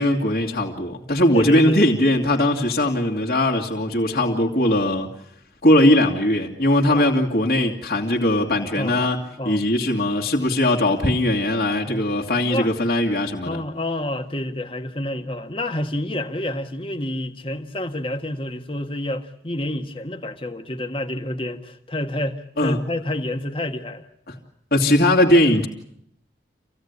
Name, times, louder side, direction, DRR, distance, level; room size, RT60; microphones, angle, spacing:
voice 1, 0.0-5.1 5.6-9.2 9.4-13.6 22.6-22.8 24.3-24.4 24.7-25.7, left 1 dB, 50° left, 2.7 m, -19 dB
voice 2, 1.3-1.8 6.9-7.1 8.8-9.6 11.9-12.0 12.4-12.7 13.4-24.0, left 1 dB, 30° left, 1.6 m, -29 dB
27.0 x 17.0 x 9.7 m
head